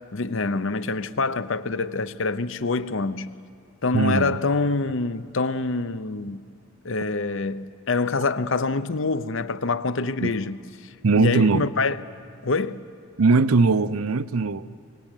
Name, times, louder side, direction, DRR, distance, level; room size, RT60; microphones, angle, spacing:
voice 1, 0.1-3.3 3.8-6.4 6.8-12.0 12.4-12.8, left 3 dB, 65° left, 0.8 m, -26 dB
voice 2, 3.9-4.4 10.2-10.3 11.0-11.7 13.2-14.7, right 4 dB, 90° right, 0.6 m, -20 dB
22.5 x 19.5 x 9.1 m
head